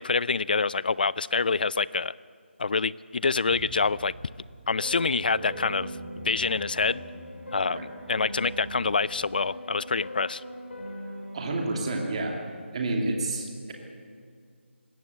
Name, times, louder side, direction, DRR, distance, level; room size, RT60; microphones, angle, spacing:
voice 1, 0.0-2.1 2.6-4.1 4.7-5.9 6.2-7.0 7.5-7.8 8.1-10.4, left 4 dB, 45° left, 21 dB, 0.4 m, -26 dB
sound 1, 3.5-9.0, right 3 dB, 15° right, 1.2 m, -47 dB
sound 2, 4.8-12.1, equal, 70° left, 5.7 m, -40 dB
voice 2, 11.3-12.4 12.7-13.7, right 2 dB, 30° right, 1 dB, 2.6 m, -29 dB
20.0 x 16.0 x 8.2 m, 2.1 s
figure-of-eight pair, 170°, 7 cm